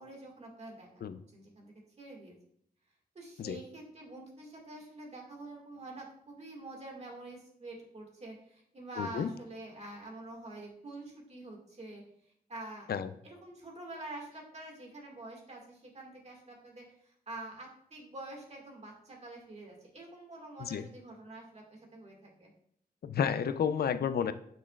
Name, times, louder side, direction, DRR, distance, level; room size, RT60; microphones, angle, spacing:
voice 1, 0.0-1.0 1.3-2.4 3.2-12.0 12.5-12.9 13.2-22.5, right 2 dB, 40° right, 0 dB, 1.9 m, -47 dB
voice 2, 9.0-9.3 12.9-13.1 20.6-20.8 23.0-24.3, left 7 dB, 75° left, 12 dB, 0.5 m, -31 dB
8.5 x 6.1 x 2.4 m, 0.68 s
wide cardioid pair, 145°, 16 cm